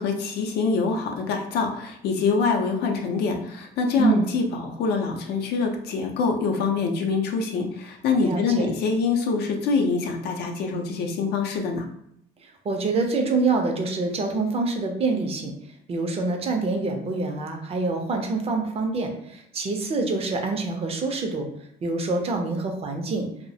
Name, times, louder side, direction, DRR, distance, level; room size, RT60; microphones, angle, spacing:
voice 1, 0.0-11.8, left 4 dB, 75° left, 2 dB, 0.5 m, -25 dB
voice 2, 4.0-4.3 8.2-8.7 12.4-15.5 15.9-21.5 21.8-23.3, right 3 dB, 35° right, 4 dB, 0.5 m, -26 dB
2.2 x 2.0 x 2.7 m, 0.73 s
cardioid pair, 110°, 17 cm